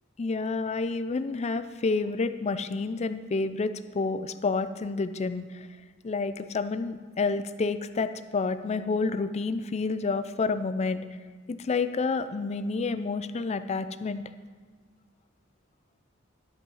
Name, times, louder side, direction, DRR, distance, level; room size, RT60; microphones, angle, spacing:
voice 1, 0.2-5.7 6.0-11.1 11.5-14.2, left 4 dB, 35° left, 12 dB, 0.4 m, -29 dB
11.5 x 5.5 x 5.5 m, 1.5 s
head